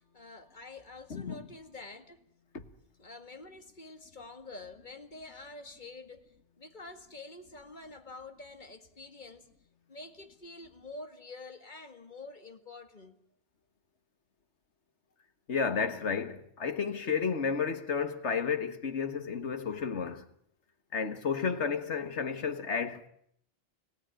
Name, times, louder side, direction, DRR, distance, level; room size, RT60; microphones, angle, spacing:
voice 1, 0.0-2.2 3.0-9.5 9.9-13.2, left 2 dB, 45° left, 2.0 m, -47 dB
voice 2, 1.1-1.5 2.5-2.6 15.5-20.2 20.9-23.1, left 6 dB, 75° left, 1.8 m, -32 dB
29.5 x 17.5 x 9.0 m
omnidirectional pair, 1.2 m